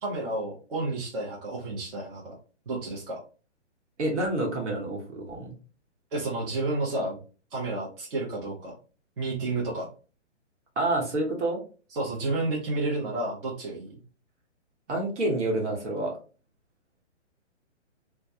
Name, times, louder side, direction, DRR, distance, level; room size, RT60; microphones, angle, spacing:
voice 1, 0.0-2.4 2.7-3.2 6.1-7.2 7.5-8.8 9.2-9.9 11.9-13.9, right 2 dB, 50° right, -4 dB, 0.7 m, -31 dB
voice 2, 4.0-5.5 10.8-11.6 14.9-16.1, right 2 dB, 70° right, 0 dB, 1.1 m, -28 dB
2.2 x 2.2 x 2.6 m, 0.37 s
hypercardioid pair, 160°, 36 cm